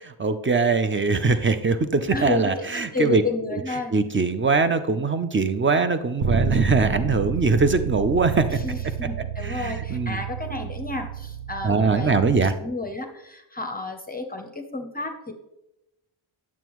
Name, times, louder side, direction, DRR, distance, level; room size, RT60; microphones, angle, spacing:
voice 1, 0.2-3.2 3.5-3.6 3.9-8.6 9.4-10.2 11.6-12.5, right 4 dB, 25° right, 10 dB, 0.5 m, -22 dB
voice 2, 2.1-3.9 8.5-12.1 12.6-15.3, left 3 dB, 20° left, 4 dB, 0.7 m, -31 dB
Bass guitar, 6.2-12.5, right 6 dB, 40° right, 0.9 m, -29 dB
8.8 x 7.1 x 3.1 m, 0.93 s
cardioid pair, 80°, 49 cm